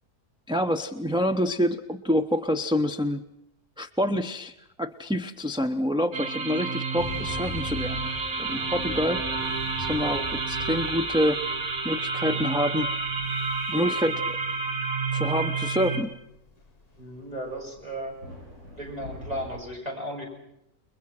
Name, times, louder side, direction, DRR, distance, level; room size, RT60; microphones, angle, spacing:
voice 1, 0.5-3.2 3.8-8.1 8.4-9.2 9.8-11.4 11.8-12.9 13.7-14.4 15.1-16.1, equal, 5° right, 5 dB, 0.6 m, -27 dB
sound 1, 4.9-7.6 8.0-8.3 8.9-9.3 9.7-12.1 12.6-13.3 15.3-15.4 16.1-16.2 16.6-19.6, left 1 dB, 85° right, 8.4 m, -47 dB
sound 2, 6.1-16.0, right 4 dB, 70° right, 2.2 m, -30 dB
sound 3, 7.0-19.6, left 4 dB, 30° left, 1.2 m, -43 dB
voice 2, 17.0-18.1 18.8-20.3, equal, 25° right, 0 dB, 7.0 m, -35 dB
29.5 x 22.0 x 6.1 m, 0.81 s
omnidirectional pair, 1.6 m